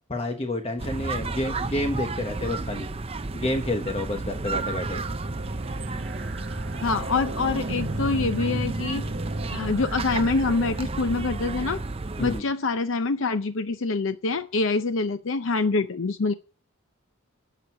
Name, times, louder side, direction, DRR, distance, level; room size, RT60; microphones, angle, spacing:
voice 1, 0.1-2.9 3.3-5.0 12.2-12.4, left 1 dB, 30° left, 4 dB, 1.2 m, -29 dB
sound 1, 0.8-12.4, right 3 dB, 25° right, 0.5 m, -32 dB
sound 2, 4.1-11.4, right 1 dB, 50° right, 1.2 m, -36 dB
voice 2, 6.8-9.1 9.5-11.8 12.2-16.3, left 3 dB, 65° left, 10 dB, 0.6 m, -25 dB
10.5 x 6.7 x 8.3 m, 0.37 s
head